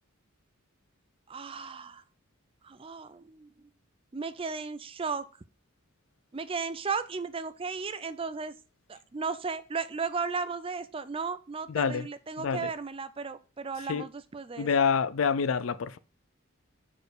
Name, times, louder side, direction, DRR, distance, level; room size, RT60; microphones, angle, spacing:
voice 1, 1.3-2.0 2.6-3.5 4.1-5.2 6.3-8.5 8.9-14.7, right 5 dB, 25° right, 0.4 m, -35 dB
voice 2, 11.7-12.1 12.4-12.7 13.9-14.0 14.6-16.0, left 6 dB, 70° left, 0.5 m, -27 dB
6.5 x 4.5 x 4.9 m
head